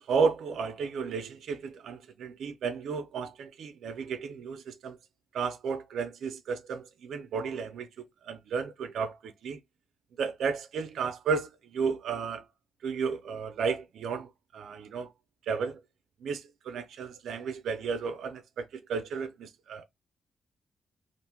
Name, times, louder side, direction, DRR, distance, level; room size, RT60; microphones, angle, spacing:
voice 1, 0.0-5.0 5.3-9.6 10.2-12.4 12.8-15.1 15.5-15.8 16.2-19.8, right 5 dB, 85° right, 0.5 m, -33 dB
2.9 x 2.5 x 3.4 m
cardioid pair, 80°, 0 cm